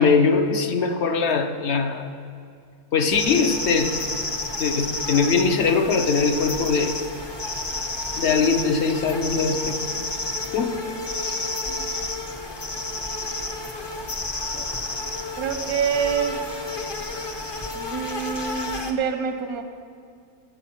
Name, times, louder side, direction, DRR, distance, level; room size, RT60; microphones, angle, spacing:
voice 1, 0.0-2.1 2.9-3.9 4.6-6.9 8.2-10.1 10.5-10.8 11.2-11.3 14.5-14.6, left 5 dB, 60° left, 8 dB, 0.8 m, -21 dB
sound 1, 3.1-18.9, left 2 dB, 30° left, 0.5 m, -30 dB
voice 2, 15.4-16.4 17.7-19.6, right 7 dB, 85° right, 7 dB, 1.3 m, -26 dB
13.0 x 7.3 x 5.9 m, 2.3 s
omnidirectional pair, 1.5 m